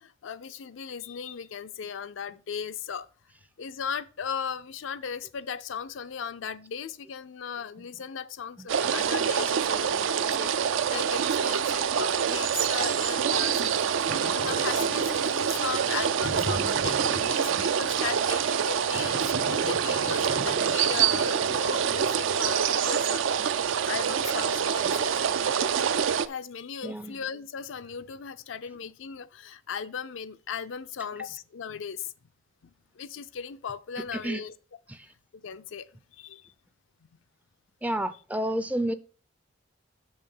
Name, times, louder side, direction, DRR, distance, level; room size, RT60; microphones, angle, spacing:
voice 1, 0.0-3.1 3.6-23.6 23.8-25.1 26.2-32.1 32.6-34.5 35.4-35.9 36.1-36.5, left 6 dB, 80° left, 0.5 m, -37 dB
sound 1, 8.7-26.3, right 7 dB, 80° right, 0.4 m, -26 dB
sound 2, 14.1-22.5, right 2 dB, 50° right, 0.8 m, -39 dB
voice 2, 26.8-27.2 34.1-34.4 34.9-35.1 37.8-38.9, right 1 dB, 10° right, 0.3 m, -30 dB
6.8 x 5.5 x 5.4 m
head